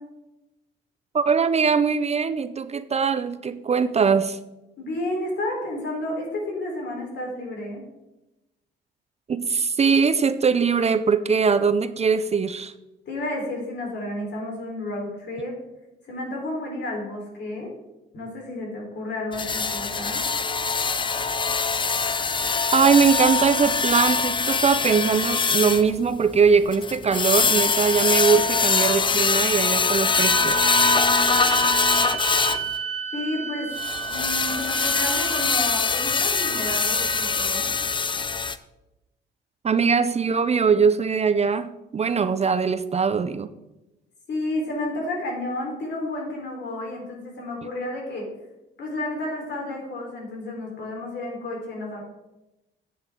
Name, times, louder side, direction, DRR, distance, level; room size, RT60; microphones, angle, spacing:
voice 1, 1.1-4.4 9.3-12.7 22.7-30.6 39.6-43.5, right 5 dB, 35° right, 12 dB, 0.5 m, -21 dB
voice 2, 4.8-7.8 13.1-15.6 16.0-17.7 18.1-20.2 33.1-33.7 34.1-37.7 44.3-48.2 48.8-52.0, left 1 dB, 65° left, 0 dB, 3.9 m, -31 dB
sound 1, 19.3-32.7 33.8-38.6, left 4 dB, 25° left, 0.5 m, -23 dB
sound 2, 30.1-37.6, right 7 dB, 85° right, 2.2 m, -31 dB
10.0 x 9.0 x 3.7 m, 0.97 s
cardioid pair, 90°, 20 cm